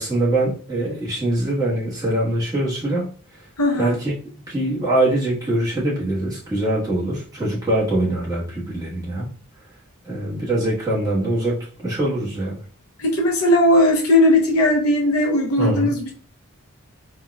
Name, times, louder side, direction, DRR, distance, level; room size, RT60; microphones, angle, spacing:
voice 1, 0.0-3.1 3.8-4.1 4.5-9.3 10.0-12.6 15.6-15.9, right 1 dB, 15° right, -7 dB, 1.2 m, -23 dB
voice 2, 3.6-4.0 13.0-16.1, left 1 dB, 75° left, 0 dB, 0.7 m, -18 dB
4.4 x 2.3 x 2.2 m, 0.41 s
head